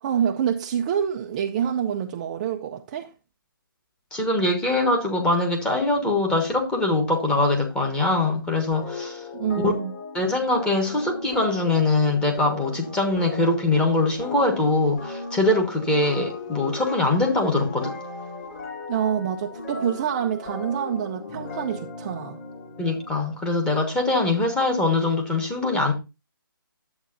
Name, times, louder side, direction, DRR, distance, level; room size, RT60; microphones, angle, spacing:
voice 1, 0.0-3.1 9.3-9.9 18.9-22.4, right 8 dB, 20° right, 0.5 m, -26 dB
voice 2, 4.1-9.2 9.6-9.7 10.1-18.0 22.8-25.9, left 2 dB, 5° left, 1.4 m, -22 dB
sound 1, 8.7-23.3, left 3 dB, 35° left, 3.3 m, -37 dB
11.0 x 7.8 x 2.6 m
figure-of-eight pair, 150°, 12 cm